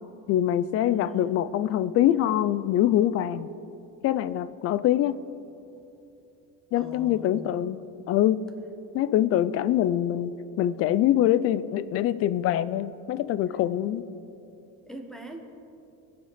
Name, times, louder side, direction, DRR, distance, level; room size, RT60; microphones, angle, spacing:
voice 1, 0.3-3.5 4.0-5.2 6.7-7.8 8.1-8.4 8.9-14.0, left 12 dB, 45° left, 16 dB, 0.5 m, -24 dB
voice 2, 0.8-1.3 6.7-7.5 14.8-15.4, equal, ahead, 2 dB, 1.4 m, -40 dB
23.5 x 7.8 x 5.8 m, 2.8 s
cardioid pair, 160°, 32 cm